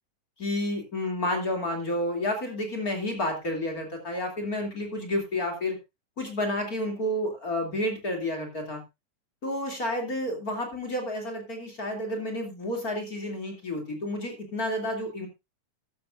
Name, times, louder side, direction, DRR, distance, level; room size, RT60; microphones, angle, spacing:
voice 1, 0.4-5.8 6.2-8.8 9.4-15.3, left 1 dB, 30° left, 2 dB, 2.8 m, -30 dB
14.0 x 12.0 x 2.5 m, 0.23 s
omnidirectional pair, 3.7 m